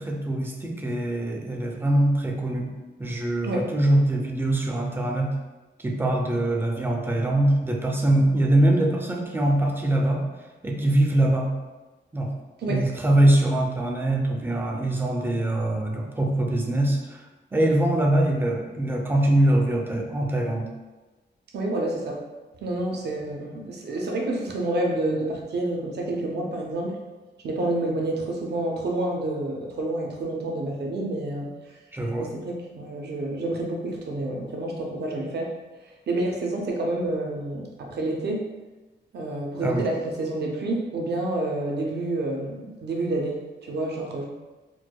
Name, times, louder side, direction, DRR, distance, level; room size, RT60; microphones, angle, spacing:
voice 1, 0.0-2.7 3.0-5.3 5.8-10.2 10.6-11.5 12.1-12.3 12.7-17.2 17.5-20.7 31.9-32.3 39.6-39.9, right 1 dB, 10° right, 0 dB, 0.4 m, -23 dB
voice 2, 21.5-22.2 22.6-27.0 27.4-31.7 32.2-35.5 36.1-38.5 39.1-44.2, right 2 dB, 60° right, 0 dB, 0.5 m, -28 dB
4.5 x 2.2 x 2.2 m, 1.2 s
wide cardioid pair, 145°, 19 cm